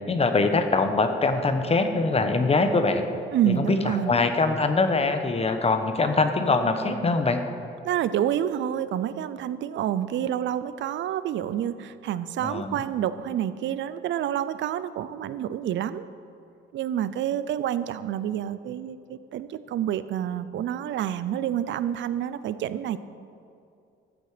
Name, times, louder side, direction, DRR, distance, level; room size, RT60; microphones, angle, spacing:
voice 1, 0.1-3.0 3.6-7.4 12.4-12.8, left 3 dB, 30° left, 7 dB, 1.1 m, -23 dB
voice 2, 3.3-4.1 7.8-16.1 16.7-23.0, right 10 dB, 70° right, 14 dB, 0.5 m, -28 dB
13.5 x 7.7 x 5.0 m, 2.5 s
cardioid pair, 90°, 20 cm